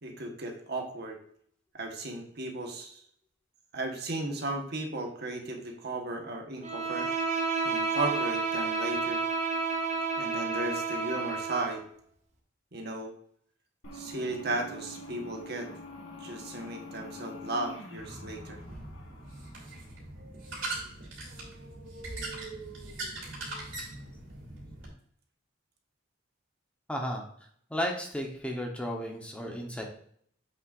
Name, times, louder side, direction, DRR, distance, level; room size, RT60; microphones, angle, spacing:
voice 1, 0.0-1.2 1.7-3.0 3.7-7.1 7.6-9.2 10.2-11.8 12.7-13.1 13.9-15.7 16.2-18.6, right 2 dB, 55° right, 2 dB, 1.3 m, -35 dB
Bowed string instrument, 6.6-11.8, right 4 dB, 35° right, 1.1 m, -30 dB
sound 1, 13.8-20.2, left 1 dB, 75° left, 1.7 m, -46 dB
sound 2, 18.0-24.9, right 2 dB, 80° right, 3.0 m, -41 dB
voice 2, 26.9-27.2 27.7-29.8, equal, 5° left, 1 dB, 1.0 m, -33 dB
7.8 x 6.5 x 2.6 m, 0.64 s
head